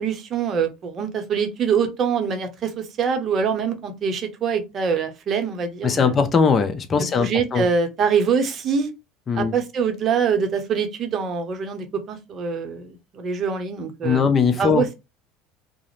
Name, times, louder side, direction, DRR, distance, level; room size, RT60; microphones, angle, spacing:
voice 1, 0.0-6.1 7.0-8.9 9.4-14.2 14.6-15.0, right 6 dB, 45° right, 0.7 m, -24 dB
voice 2, 5.8-7.7 9.3-9.5 14.0-14.8, left 5 dB, 35° left, 0.6 m, -20 dB
2.4 x 2.0 x 3.0 m
hypercardioid pair, 80°, 0 cm